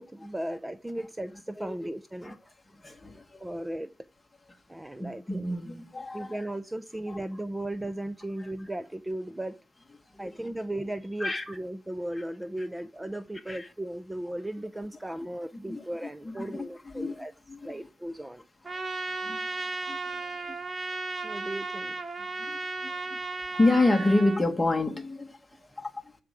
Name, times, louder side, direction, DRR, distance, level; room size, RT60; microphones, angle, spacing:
voice 1, 0.0-2.5 3.4-3.9 4.7-5.6 6.1-9.6 10.2-17.3 17.6-18.5 21.2-22.0, right 1 dB, 10° right, 0.6 m, -36 dB
voice 2, 2.8-3.4 5.0-6.4 7.1-7.2 8.4-8.5 10.1-10.3 11.2-11.4 13.5-13.7 15.7-17.8 19.1-19.4 19.8-20.6 22.2-23.2 23.5-26.2, left 2 dB, 15° left, 2.1 m, -29 dB
Trumpet, 18.6-24.4, right 3 dB, 35° right, 2.4 m, -35 dB
12.5 x 5.0 x 8.3 m
cardioid pair, 90°, 0 cm